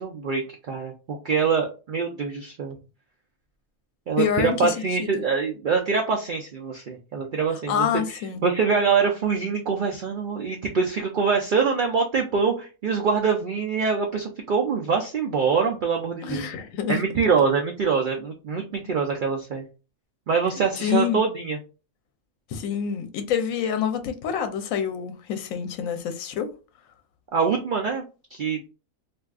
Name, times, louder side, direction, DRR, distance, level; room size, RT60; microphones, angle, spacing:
voice 1, 0.0-2.8 4.1-16.4 16.9-19.7 20.3-21.6 27.3-28.0 28.3-28.6, right 5 dB, 75° right, 0.4 m, -24 dB
voice 2, 4.2-5.2 7.7-8.4 16.2-17.0 20.8-21.2 22.5-26.5, left 8 dB, 75° left, 1.0 m, -27 dB
2.6 x 2.3 x 3.4 m
omnidirectional pair, 1.4 m